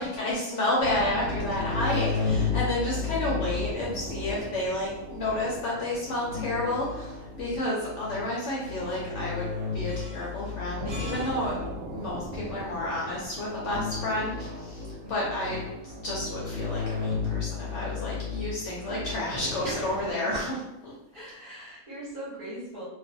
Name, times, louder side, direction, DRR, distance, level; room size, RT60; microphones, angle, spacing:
voice 1, 0.0-11.5 11.9-20.9, left 1 dB, 65° left, -5 dB, 0.8 m, -31 dB
sound 1, 0.8-20.1, left 4 dB, 85° right, 1.0 m, -34 dB
voice 2, 15.0-15.6 19.6-20.1 21.1-22.9, right 1 dB, 45° right, -8 dB, 0.8 m, -40 dB
2.4 x 2.2 x 2.5 m, 0.94 s
omnidirectional pair, 1.5 m